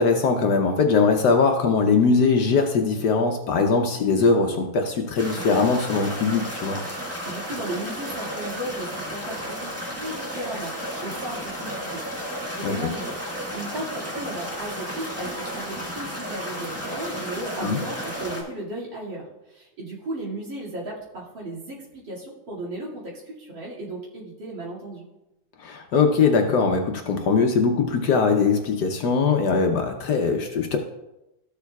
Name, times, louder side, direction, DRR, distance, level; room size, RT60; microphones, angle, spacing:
voice 1, 0.0-6.8 12.6-12.8 17.6-17.8 25.6-30.8, left 4 dB, 65° left, 4 dB, 1.2 m, -21 dB
sound 1, 5.2-18.4, equal, 10° right, 1.2 m, -33 dB
voice 2, 7.2-13.2 13.5-25.0, right 1 dB, 65° right, -6 dB, 3.0 m, -35 dB
13.5 x 6.9 x 2.3 m, 0.94 s
omnidirectional pair, 2.2 m